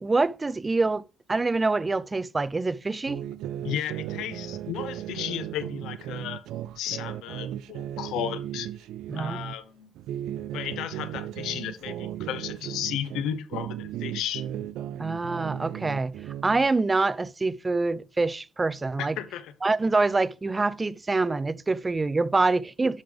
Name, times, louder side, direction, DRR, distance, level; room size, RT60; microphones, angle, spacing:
voice 1, 0.0-1.0 1.3-3.2 9.1-9.4 15.0-16.1 16.4-19.2 19.6-23.0, right 3 dB, 25° right, 0.4 m, -25 dB
sound 1, 3.1-9.5 10.0-13.3 13.5-16.7, right 11 dB, 90° right, 0.4 m, -36 dB
voice 2, 3.6-6.4 6.8-8.7 9.2-9.9 10.5-14.4 19.0-19.5, left 10 dB, 90° left, 0.8 m, -34 dB
11.5 x 5.2 x 3.4 m
cardioid pair, 90°, 0 cm